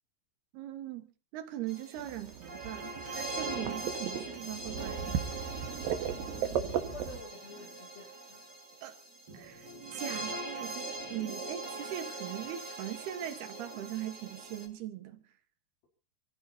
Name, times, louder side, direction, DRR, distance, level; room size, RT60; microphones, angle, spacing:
voice 1, 0.5-5.3 8.8-9.0 9.3-15.2, right 12 dB, 85° right, 3.4 m, -40 dB
sound 1, 1.7-14.7, right 3 dB, 30° right, 2.5 m, -41 dB
sound 2, 2.0-7.2, right 8 dB, 70° right, 3.1 m, -36 dB
voice 2, 6.1-8.4, left 4 dB, 65° left, 5.2 m, -49 dB
28.5 x 15.0 x 2.8 m
omnidirectional pair, 4.4 m